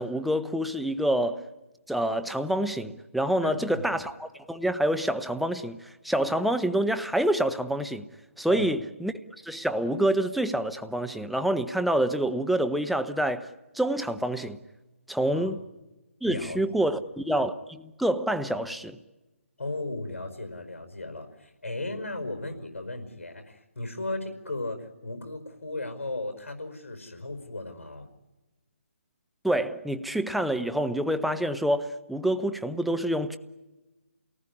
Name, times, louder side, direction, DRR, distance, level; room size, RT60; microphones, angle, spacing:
voice 1, 0.0-1.5 1.9-8.1 8.4-9.1 9.4-13.5 13.7-14.6 15.1-15.6 16.2-19.0 29.4-33.4, right 1 dB, ahead, 0.8 m, -27 dB
voice 2, 3.4-3.9 8.5-8.7 15.3-15.5 16.2-16.9 19.6-28.1, left 2 dB, 75° left, 5.0 m, -36 dB
28.5 x 19.0 x 9.8 m
figure-of-eight pair, 150°, 7 cm